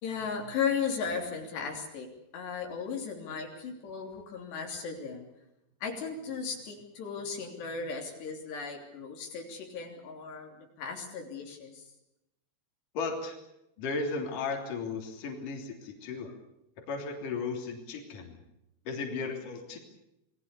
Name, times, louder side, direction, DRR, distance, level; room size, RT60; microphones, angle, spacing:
voice 1, 0.0-2.1 2.3-5.3 5.8-11.8, left 6 dB, 70° left, 2 dB, 5.4 m, -36 dB
voice 2, 12.9-13.4 13.8-16.3 16.9-18.4 18.9-19.8, left 4 dB, 50° left, 2 dB, 4.6 m, -35 dB
28.0 x 20.0 x 6.9 m, 0.85 s
omnidirectional pair, 5.1 m